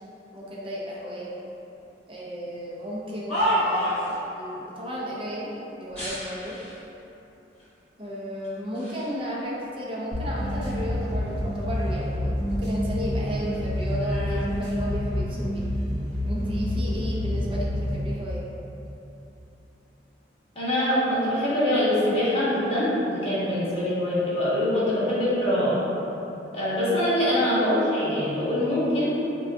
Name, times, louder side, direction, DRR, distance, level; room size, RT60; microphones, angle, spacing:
voice 1, 0.3-1.3 2.1-6.6 8.0-15.6 16.2-18.4, equal, 30° right, -5 dB, 0.6 m, -34 dB
dish crash, 2.9-4.2 5.9-6.8 7.6-7.7 8.4-9.1 9.5-11.0 11.4-13.0 13.3-15.4 16.2-16.5, equal, 5° left, 1.5 m, -32 dB
sound 1, 10.1-18.1, left 1 dB, 70° right, 1.0 m, -28 dB
voice 2, 20.5-25.8 26.5-29.1, left 1 dB, 30° left, -10 dB, 1.1 m, -24 dB
5.2 x 2.3 x 2.6 m, 3.0 s
head